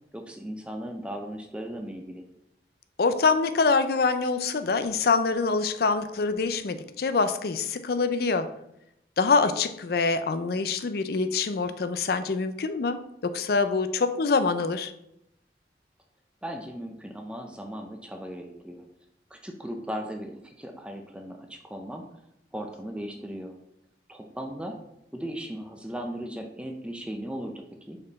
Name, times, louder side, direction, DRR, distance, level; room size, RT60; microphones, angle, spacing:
voice 1, 0.1-2.3 16.4-18.8 19.3-22.1 22.5-23.6 24.1-24.8 25.1-28.0, equal, 5° right, 4 dB, 0.5 m, -37 dB
voice 2, 3.0-8.5 9.2-14.9, left 4 dB, 60° left, 11 dB, 0.5 m, -25 dB
5.3 x 4.3 x 4.1 m, 0.80 s
head